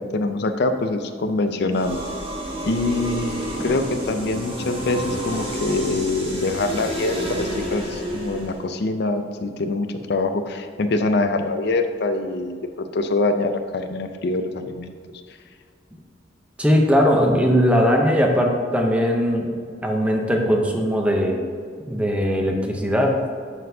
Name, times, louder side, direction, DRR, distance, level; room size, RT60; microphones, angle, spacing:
voice 1, 0.0-2.0 2.6-15.0, left 2 dB, 60° left, 7 dB, 0.5 m, -24 dB
sound 1, 1.7-8.6, equal, 30° right, 1.5 m, -30 dB
voice 2, 16.6-19.5 19.8-21.4 21.9-23.2, equal, 5° right, 2 dB, 0.7 m, -19 dB
10.5 x 4.2 x 2.7 m, 2.1 s
head